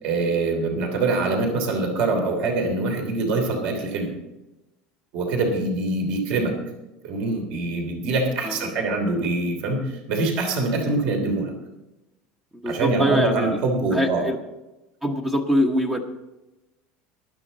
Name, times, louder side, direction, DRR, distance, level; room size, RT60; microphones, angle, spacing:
voice 1, 0.0-4.1 5.1-6.5 7.0-11.5 12.6-14.2, right 3 dB, 50° right, 3 dB, 3.1 m, -24 dB
voice 2, 8.4-8.9 12.5-13.6 13.9-14.4 15.0-16.0, equal, 10° right, 4 dB, 1.0 m, -24 dB
15.0 x 12.0 x 4.0 m, 0.98 s
cardioid pair, 170°, 3 cm